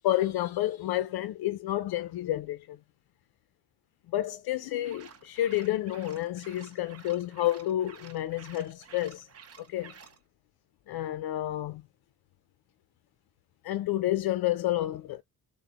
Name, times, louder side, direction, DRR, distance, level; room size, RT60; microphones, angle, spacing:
voice 1, 0.0-2.8 4.1-9.3 9.6-9.9 10.9-11.8 13.6-15.2, left 14 dB, 70° left, 0.5 m, -30 dB
sound 1, 4.8-10.2, right 7 dB, 40° right, 0.7 m, -52 dB
6.3 x 2.1 x 2.9 m
cardioid pair, 140°, 39 cm